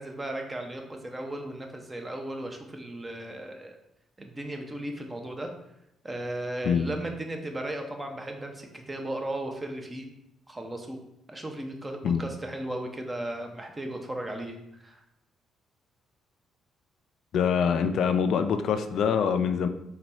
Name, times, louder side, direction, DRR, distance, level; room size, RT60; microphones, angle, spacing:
voice 1, 0.0-3.8 4.2-5.5 6.0-10.0 10.5-11.0 11.3-14.6 14.8-15.0, right 1 dB, 20° right, 3 dB, 0.6 m, -36 dB
voice 2, 17.3-19.7, left 7 dB, 70° left, 8 dB, 0.3 m, -24 dB
4.0 x 2.3 x 4.2 m, 0.81 s
cardioid pair, 90°, 0 cm